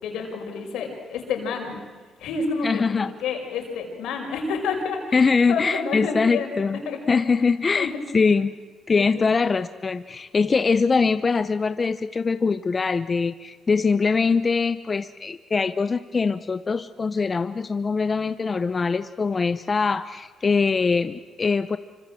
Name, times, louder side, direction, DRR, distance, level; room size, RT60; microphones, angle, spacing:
voice 1, 0.0-1.8 2.2-5.0 5.5-7.2 7.7-7.9 9.0-9.3, left 4 dB, 85° left, 3 dB, 5.9 m, -29 dB
voice 2, 2.6-3.1 5.1-6.8 7.1-8.5 8.9-21.8, left 4 dB, 35° left, 12 dB, 0.7 m, -22 dB
26.5 x 25.0 x 7.7 m, 1.4 s
cardioid pair, 90°, 0 cm